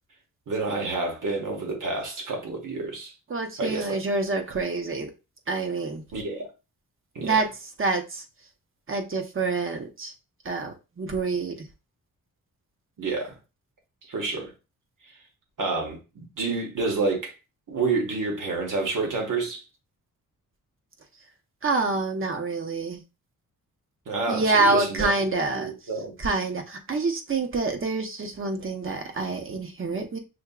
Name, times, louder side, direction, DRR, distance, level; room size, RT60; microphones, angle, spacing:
voice 1, 0.5-3.1 3.6-4.0 6.1-6.4 7.2-7.3 13.0-13.3 14.1-14.5 15.6-17.3 17.7-19.6 24.1-25.1 25.5-26.1, right 3 dB, 70° right, 1.6 m, -28 dB
voice 2, 3.3-5.1 5.5-6.0 7.2-8.2 8.9-10.1 10.4-11.7 21.6-23.0 24.3-25.7 26.2-30.2, right 3 dB, 40° right, 0.9 m, -27 dB
6.2 x 2.8 x 2.4 m
cardioid pair, 100°, 33 cm